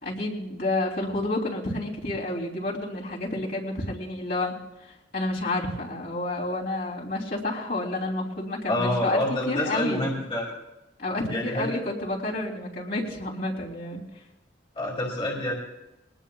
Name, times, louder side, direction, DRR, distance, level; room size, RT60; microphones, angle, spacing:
voice 1, 0.0-10.1 11.0-14.0, left 2 dB, 55° left, -3 dB, 3.2 m, -30 dB
voice 2, 8.7-10.5 11.3-11.7 14.8-15.5, left 1 dB, 30° left, -3 dB, 2.6 m, -27 dB
22.5 x 19.0 x 2.4 m, 0.94 s
head